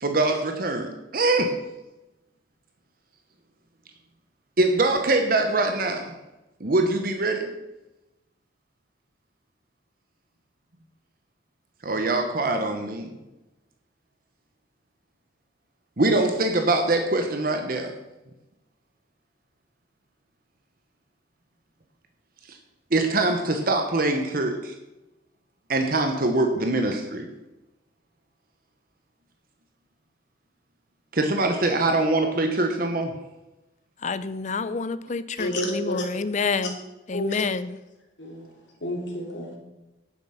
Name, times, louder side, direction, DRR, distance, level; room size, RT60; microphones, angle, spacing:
voice 1, 0.0-1.6 4.6-6.1 6.6-7.5 11.8-13.1 16.0-17.9 22.5-22.6 22.9-24.7 25.7-27.3 31.1-33.1 35.3-35.4, right 2 dB, 50° right, 1.0 m, -23 dB
voice 2, 34.0-36.8 37.1-37.8, left 4 dB, 40° left, 0.5 m, -28 dB
voice 3, 35.4-36.0 36.6-36.7 37.1-37.5 38.2-38.5 38.8-39.6, left 1 dB, 80° left, 2.9 m, -30 dB
10.0 x 7.5 x 5.8 m
head